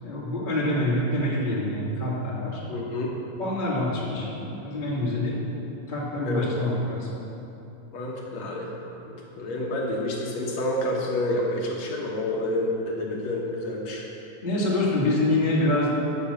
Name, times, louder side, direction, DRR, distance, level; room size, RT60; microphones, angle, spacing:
voice 1, 0.0-2.6 3.4-5.4 5.9-7.1 14.4-15.9, left 1 dB, 25° left, -7 dB, 1.2 m, -26 dB
voice 2, 2.7-3.1 6.3-6.5 7.9-8.7 9.0-14.0, left 1 dB, 75° left, -2 dB, 1.6 m, -29 dB
10.5 x 7.2 x 6.7 m, 2.8 s
omnidirectional pair, 4.7 m